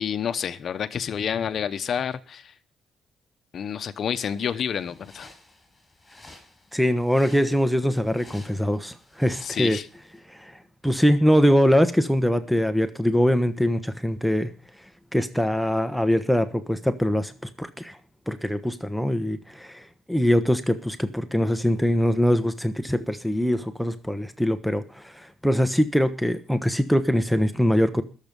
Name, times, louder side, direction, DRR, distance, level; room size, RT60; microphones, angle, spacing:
voice 1, 0.0-2.5 3.5-5.3 9.4-9.9, left 8 dB, 60° left, 0.8 m, -29 dB
sound 1, 4.4-10.2, left 2 dB, 20° left, 6.0 m, -51 dB
voice 2, 6.7-9.8 10.3-14.5 15.1-18.0 18.3-28.0, equal, ahead, 1.1 m, -23 dB
20.5 x 7.4 x 5.3 m
cardioid pair, 90°, 0 cm